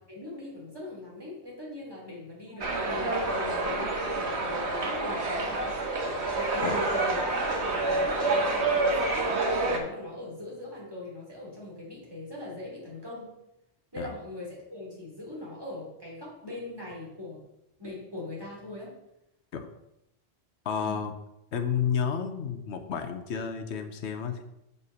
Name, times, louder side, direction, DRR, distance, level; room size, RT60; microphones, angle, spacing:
voice 1, 0.0-5.7 6.3-13.3 13.9-17.4 17.8-18.9 20.8-21.0, left 2 dB, 20° right, -5 dB, 3.3 m, -40 dB
sound 1, 2.6-9.8, right 2 dB, 80° right, 1.6 m, -28 dB
voice 2, 20.6-21.1 21.5-24.4, left 7 dB, 85° left, 6 dB, 1.1 m, -31 dB
6.8 x 5.3 x 6.3 m, 0.85 s
omnidirectional pair, 1.1 m